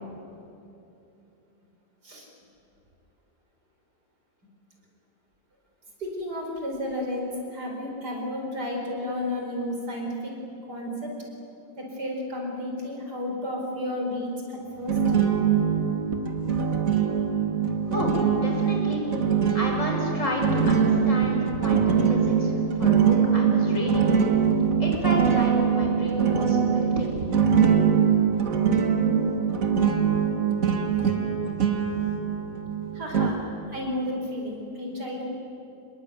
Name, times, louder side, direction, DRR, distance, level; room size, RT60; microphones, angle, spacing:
voice 1, 6.0-10.3 10.7-11.1 11.8-15.0 22.2-22.3 32.9-33.4 33.7-35.3, left 1 dB, 70° right, 1 dB, 5.3 m, -32 dB
sound 1, 14.9-33.3, right 7 dB, 55° right, 2.0 m, -23 dB
voice 2, 17.9-19.0 19.5-24.1 24.8-27.1, left 1 dB, 45° left, 0 dB, 5.7 m, -31 dB
26.5 x 21.5 x 9.4 m, 2.8 s
omnidirectional pair, 1.8 m